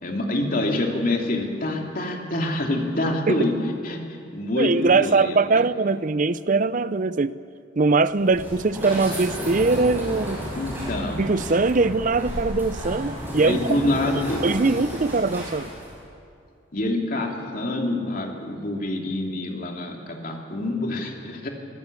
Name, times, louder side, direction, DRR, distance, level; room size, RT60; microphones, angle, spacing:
voice 1, 0.0-3.5 3.8-4.0 4.3-5.6 10.6-11.2 13.4-14.4 16.7-21.5, left 1 dB, 50° left, 1 dB, 2.8 m, -26 dB
voice 2, 4.6-7.3 7.8-10.4 11.2-13.8 14.1-15.7, right 3 dB, 45° right, 15 dB, 0.6 m, -22 dB
sound 1, 8.1-16.0, equal, 10° right, 6.7 m, -33 dB
23.0 x 16.0 x 8.6 m, 2.5 s
head